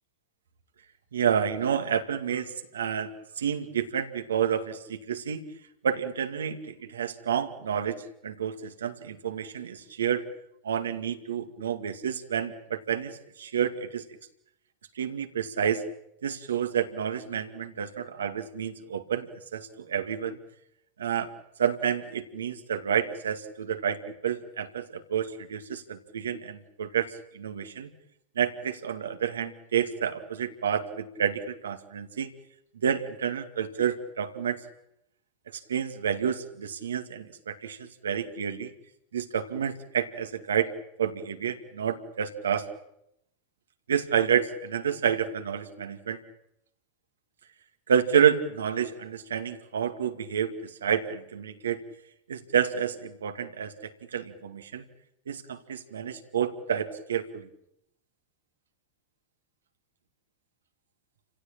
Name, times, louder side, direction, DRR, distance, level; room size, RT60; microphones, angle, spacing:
voice 1, 1.1-5.4 5.8-10.2 10.6-14.0 15.0-15.8 16.2-20.4 21.0-21.3 21.6-27.9 28.4-32.3 32.7-34.6 35.5-38.7 39.1-40.7 41.0-42.7 43.9-46.2 47.9-51.8 52.3-54.8 55.3-57.5, right 8 dB, 75° right, 7 dB, 2.3 m, -29 dB
29.5 x 17.0 x 8.8 m, 0.82 s
figure-of-eight pair, 90°, 0 cm